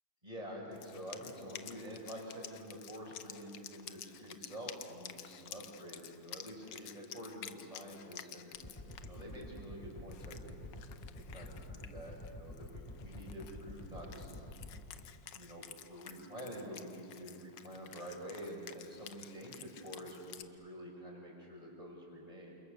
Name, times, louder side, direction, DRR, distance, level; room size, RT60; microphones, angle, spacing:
voice 1, 0.2-10.6 11.3-14.3 15.3-15.6 15.9-22.6, equal, 15° right, -2 dB, 6.3 m, -48 dB
Wind instrument woodwind instrument, 0.7-20.4, left 10 dB, 65° left, 1.5 m, -52 dB
sound 1, 8.5-14.8, left 1 dB, 15° left, 4.3 m, -48 dB
29.0 x 28.0 x 6.9 m, 2.6 s
omnidirectional pair, 2.3 m